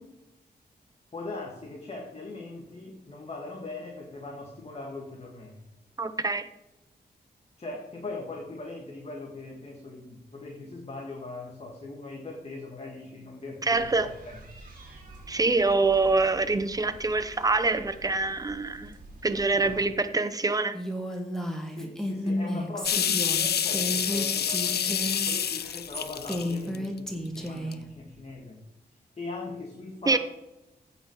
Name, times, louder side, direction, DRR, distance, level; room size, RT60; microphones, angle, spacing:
voice 1, 1.1-5.6 7.6-14.4 19.5-19.9 21.7-28.7 29.2-30.2, left 3 dB, 35° left, 0 dB, 1.5 m, -40 dB
voice 2, 6.0-6.5 13.6-14.1 15.3-19.0 19.2-20.8 30.1-30.2, right 3 dB, 20° right, 10 dB, 0.7 m, -25 dB
sound 1, 13.7-19.9, right 2 dB, 50° right, 2.7 m, -48 dB
Female speech woman speaking, 20.7-27.8, equal, 5° left, 1.5 m, -32 dB
sound 2, 22.8-27.0 27.5-27.7, left 8 dB, 70° left, 0.5 m, -28 dB
15.5 x 5.6 x 4.8 m, 0.95 s
wide cardioid pair, 145°, 18 cm